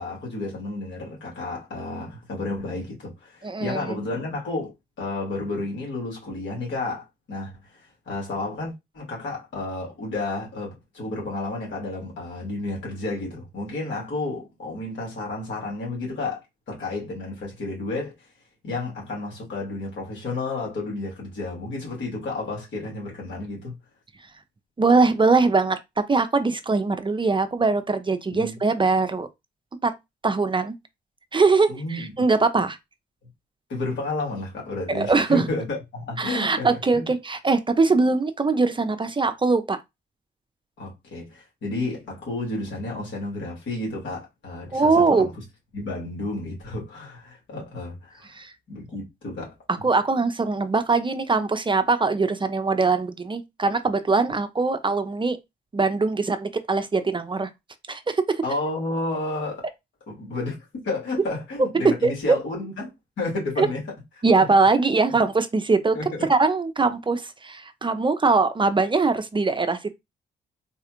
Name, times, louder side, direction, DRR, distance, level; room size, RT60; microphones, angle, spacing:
voice 1, 0.0-4.7 5.0-16.4 16.7-18.3 18.6-23.7 28.3-28.6 31.7-32.3 33.7-37.1 40.8-45.3 45.7-48.3 48.7-49.5 58.4-59.7 60.1-63.8 64.4-64.5 64.8-64.9 65.9-66.3, left 2 dB, 80° left, 2.1 m, -31 dB
voice 2, 3.4-4.0 24.8-29.3 29.8-29.9 30.2-30.8 31.3-32.8 34.9-35.4 36.2-39.8 44.7-45.3 48.3-48.5 49.8-55.4 55.7-57.5 57.9-58.4 62.0-62.1 63.6-63.7 64.2-66.0 66.3-69.9, right 3 dB, 25° right, 0.5 m, -22 dB
4.1 x 2.4 x 2.9 m
supercardioid pair, 60°, 19 cm